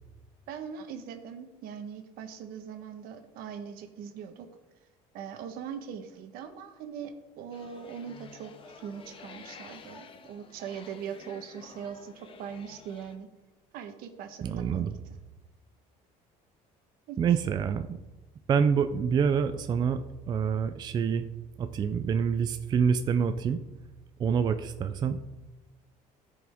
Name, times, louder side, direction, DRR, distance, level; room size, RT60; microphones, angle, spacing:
voice 1, 0.5-4.5 5.1-13.3 13.7-14.9 17.1-17.2, right 7 dB, 75° right, 7 dB, 1.1 m, -41 dB
sound 1, 7.5-13.2, left 5 dB, 35° left, 0.7 m, -50 dB
voice 2, 14.4-14.9 17.2-18.0 18.5-21.3 21.6-23.6 24.2-25.2, right 7 dB, 30° right, 9 dB, 0.4 m, -27 dB
13.5 x 4.9 x 3.5 m, 1.1 s
cardioid pair, 145°, 15 cm